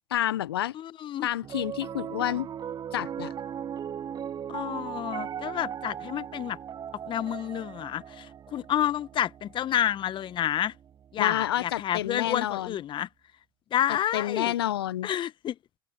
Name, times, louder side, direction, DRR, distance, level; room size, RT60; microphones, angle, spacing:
voice 1, 0.1-0.7 1.2-2.5 2.9-3.3 11.2-12.8 14.1-15.1, left 12 dB, 75° left, 1.1 m, -29 dB
voice 2, 0.7-1.3 4.5-6.6 7.1-10.7 11.1-13.1 13.7-14.5 15.0-15.6, left 11 dB, 40° left, 1.4 m, -29 dB
Piano, 1.4-11.8, right 9 dB, 30° right, 0.8 m, -38 dB
figure-of-eight pair, 70°, 13 cm